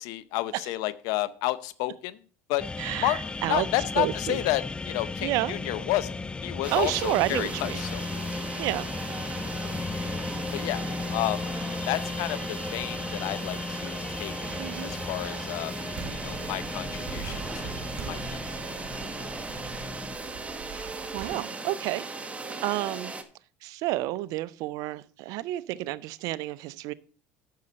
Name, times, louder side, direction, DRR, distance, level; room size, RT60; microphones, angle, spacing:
voice 1, 0.0-2.2 2.5-2.6 3.0-6.1 6.4-8.0 10.5-10.8 11.1-11.4 11.9-14.3 14.8-15.7 16.2-18.4, left 16 dB, 70° left, 16 dB, 0.6 m, -31 dB
sound 1, 2.6-20.2, left 3 dB, 15° left, 0.3 m, -36 dB
voice 2, 2.8-3.7 4.0-4.4 5.2-5.6 6.7-7.8 8.6-8.9 14.6-14.9 21.1-22.1 22.6-23.1 23.6-26.9, right 17 dB, 65° right, 19 dB, 0.5 m, -30 dB
sound 2, 6.6-23.2, right 3 dB, 20° right, 1.1 m, -38 dB
sound 3, 15.9-21.3, right 7 dB, 45° right, 2.2 m, -42 dB
9.5 x 6.5 x 4.2 m, 0.43 s
hypercardioid pair, 80°, 7 cm